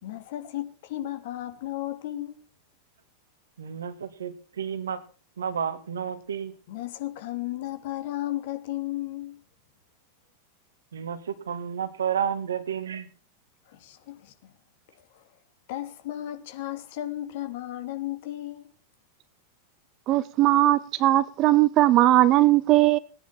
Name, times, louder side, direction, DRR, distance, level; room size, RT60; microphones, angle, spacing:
voice 1, 0.0-2.4 6.7-9.4 13.7-14.5 15.1-15.2 15.7-18.7, left 14 dB, 50° left, 2.8 m, -34 dB
voice 2, 3.6-5.0 5.4-6.5 10.9-13.1, right 8 dB, 65° right, 1.9 m, -31 dB
voice 3, 20.1-23.0, right 15 dB, 35° right, 1.0 m, -19 dB
18.5 x 10.5 x 5.9 m
figure-of-eight pair, 90°, 0 cm